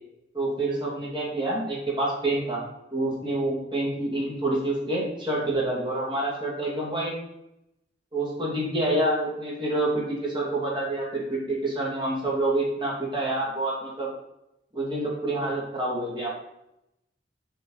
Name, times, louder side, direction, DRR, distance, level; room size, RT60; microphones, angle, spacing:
voice 1, 0.3-2.6 2.9-7.2 8.1-14.1 14.7-16.3, right 2 dB, 25° right, -5 dB, 2.6 m, -27 dB
6.3 x 5.7 x 5.7 m, 0.85 s
head